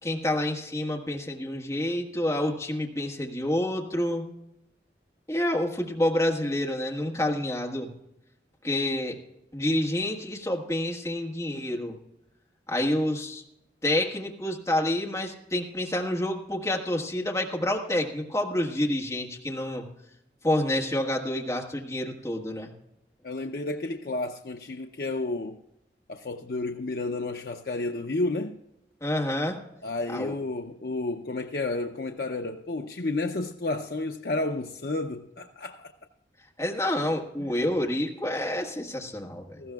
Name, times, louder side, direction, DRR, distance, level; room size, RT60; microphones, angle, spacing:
voice 1, 0.0-4.2 5.3-7.9 8.6-9.2 9.5-12.0 12.7-13.4 13.8-19.8 20.4-22.7 29.0-29.6 30.1-30.3 36.6-39.5, left 1 dB, 15° left, 1.4 m, -28 dB
voice 2, 23.2-25.6 26.1-28.5 29.8-35.9 37.4-37.5 39.6-39.7, left 2 dB, 55° left, 0.6 m, -31 dB
19.5 x 14.5 x 2.3 m
head